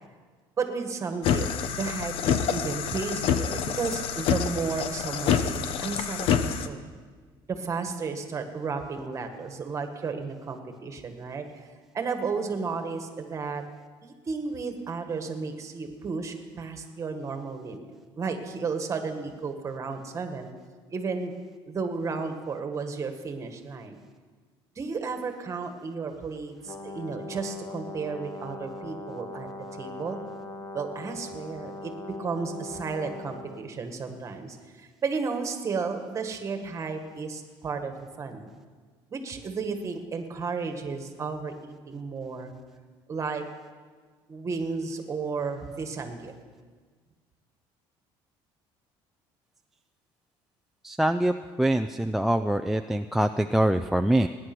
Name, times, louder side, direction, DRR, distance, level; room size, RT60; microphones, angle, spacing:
voice 1, 0.6-1.5 1.8-6.8 7.5-11.5 11.9-13.6 14.0-17.9 18.2-20.5 20.9-21.3 21.7-24.0 24.7-29.5 29.8-30.2 30.7-31.9 32.2-38.5 39.1-42.5 43.1-43.4 44.3-46.3, right 4 dB, 30° right, 6 dB, 1.7 m, -33 dB
sound 1, 1.2-6.7, left 8 dB, 60° left, 0.8 m, -27 dB
Brass instrument, 26.6-33.6, left 2 dB, 30° left, 1.6 m, -40 dB
voice 2, 50.8-54.3, right 1 dB, 5° right, 10 dB, 0.3 m, -24 dB
19.5 x 9.9 x 6.1 m, 1.5 s
cardioid pair, 135°, 10 cm